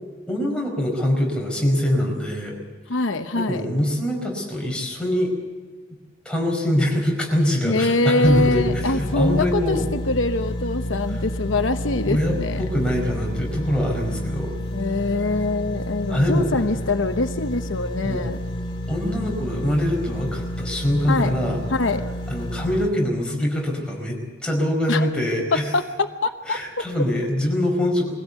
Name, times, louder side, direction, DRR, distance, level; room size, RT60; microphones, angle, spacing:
voice 1, 0.3-2.6 3.3-5.3 6.2-9.9 12.0-14.6 16.1-16.5 18.0-18.2 18.9-21.6 22.3-25.7 26.5-28.1, left 1 dB, 5° left, -1 dB, 5.0 m, -23 dB
voice 2, 2.9-3.7 7.6-12.6 14.7-18.4 21.1-21.4 21.7-22.1 24.9-25.1 25.7-26.8, left 2 dB, 85° left, 8 dB, 1.0 m, -24 dB
sound 1, 8.2-22.9, equal, 25° left, 2.8 m, -30 dB
22.0 x 16.5 x 8.2 m, 1.4 s
head